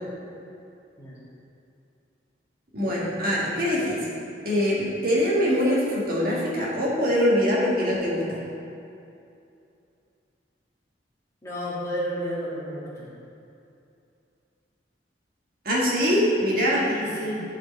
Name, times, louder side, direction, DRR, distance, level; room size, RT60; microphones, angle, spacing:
voice 1, 2.7-4.0 4.4-8.4 15.6-16.8, equal, 55° right, -5 dB, 1.8 m, -23 dB
voice 2, 11.4-13.1 16.8-17.4, equal, 20° left, -8 dB, 2.1 m, -31 dB
10.5 x 5.1 x 4.2 m, 2.7 s
head